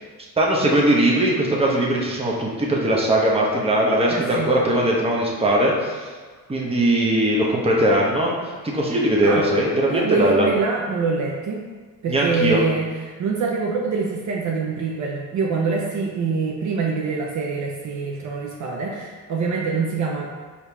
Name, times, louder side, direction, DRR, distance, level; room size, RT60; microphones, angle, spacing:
voice 1, 0.4-6.0 6.5-8.3 8.6-10.5 12.1-12.6, right 1 dB, 15° right, -3 dB, 0.9 m, -20 dB
voice 2, 4.1-4.5 9.2-9.5 9.9-11.6 12.0-20.4, right 4 dB, 55° right, -1 dB, 0.6 m, -25 dB
4.5 x 2.9 x 3.4 m, 1.4 s
cardioid pair, 95°, 36 cm